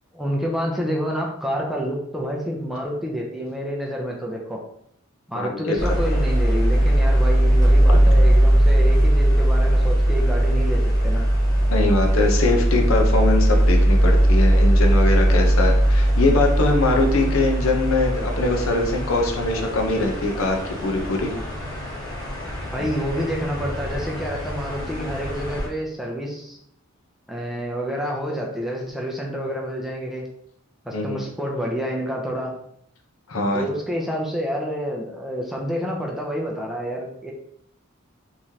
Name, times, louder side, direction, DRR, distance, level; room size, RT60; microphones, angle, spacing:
voice 1, 0.1-4.6 5.3-11.3 22.7-26.6 27.3-30.3 30.8-32.5 33.5-37.3, equal, ahead, -2 dB, 0.5 m, -28 dB
voice 2, 5.3-5.8 11.7-21.3 22.8-22.9 30.9-31.2 33.3-33.6, left 2 dB, 80° left, 3 dB, 0.7 m, -22 dB
sound 1, 5.8-25.7, right 1 dB, 20° left, 1.2 m, -19 dB
3.6 x 3.1 x 2.8 m, 0.71 s
head